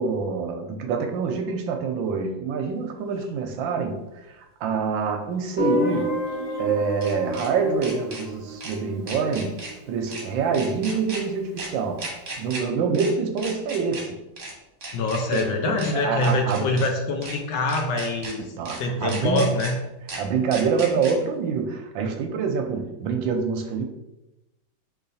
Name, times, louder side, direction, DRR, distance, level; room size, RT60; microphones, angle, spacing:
voice 1, 0.0-6.1 6.6-9.5 9.9-12.0 12.4-14.2 15.3-16.7 18.6-19.4 20.2-23.8, right 5 dB, 75° right, 4 dB, 1.2 m, -26 dB
sound 1, 3.2-3.3 5.6-7.5 7.8-8.2 8.6-8.7 9.1-9.7 10.1-10.2 10.5-11.2 11.6-11.7 12.0-12.6 12.9-13.1 13.4-14.0 14.4-14.5 14.8-15.4 15.8-15.9 16.2-16.9 17.2-17.4 17.7-18.3 18.6-18.8 19.1-19.7 20.1-20.2 20.5-21.1, right 2 dB, 40° right, 1.1 m, -36 dB
Guitar, 5.6-10.4, left 2 dB, 50° left, 1.2 m, -30 dB
voice 2, 14.9-19.8, left 2 dB, 70° left, 3 dB, 1.1 m, -25 dB
4.3 x 3.1 x 4.0 m, 0.96 s
omnidirectional pair, 2.2 m